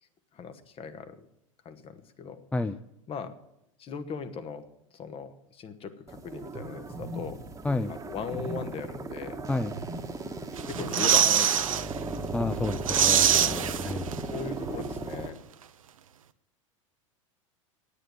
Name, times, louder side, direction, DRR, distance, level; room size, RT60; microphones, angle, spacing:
voice 1, 0.3-1.2 1.6-2.4 3.1-3.3 3.8-4.6 4.9-7.4 7.9-9.4 10.7-11.8 13.3-13.9 14.3-15.4, left 6 dB, 35° left, 10 dB, 1.3 m, -38 dB
sound 1, 6.1-15.3, right 3 dB, 20° right, 1.4 m, -37 dB
sound 2, 10.6-11.9 12.2-12.3 12.6-14.4 14.7-14.8, right 9 dB, 80° right, 0.6 m, -24 dB
voice 2, 12.3-14.1, left 2 dB, 10° left, 12 dB, 0.4 m, -30 dB
9.8 x 9.1 x 9.7 m, 0.81 s
hypercardioid pair, 90°, 17 cm